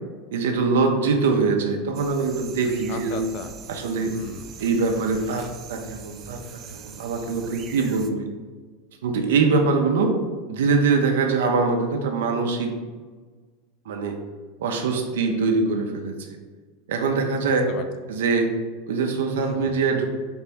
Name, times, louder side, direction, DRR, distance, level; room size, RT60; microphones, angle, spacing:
voice 1, 0.3-3.2 3.7-4.1 4.6-5.4 5.7-6.4 6.7-8.3 9.0-10.1 10.5-12.7 13.9-14.2 14.6-16.4 16.9-17.7 18.1-18.5 18.9-20.1, right 4 dB, 85° right, 4 dB, 0.7 m, -23 dB
sound 1, 1.9-8.1, right 6 dB, 40° right, 0.4 m, -42 dB
voice 2, 2.9-3.5 4.1-4.5 17.4-18.2 19.4-19.7, left 6 dB, 50° left, 8 dB, 0.4 m, -36 dB
4.3 x 2.9 x 3.4 m, 1.4 s
supercardioid pair, 130°, 0 cm